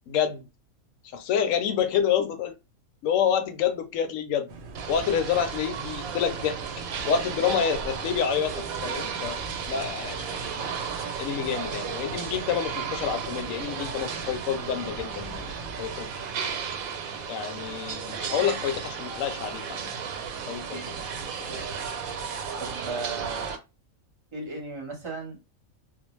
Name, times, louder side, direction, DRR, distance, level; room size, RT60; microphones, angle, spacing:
voice 1, 0.1-0.5 1.0-2.6 3.0-4.5 4.9-6.6 7.0-9.4 9.7-10.4 11.2-16.1 17.3-20.0 20.5-21.0, left 8 dB, 75° left, 0.9 m, -28 dB
sound 1, 4.5-16.1, right 3 dB, 70° right, 0.5 m, -43 dB
sound 2, 4.7-23.6, right 6 dB, 85° right, 1.0 m, -34 dB
voice 2, 20.7-21.1 21.5-21.9 22.6-23.5 24.3-25.4, right 3 dB, 25° right, 0.8 m, -37 dB
2.4 x 2.1 x 3.0 m
omnidirectional pair, 1.4 m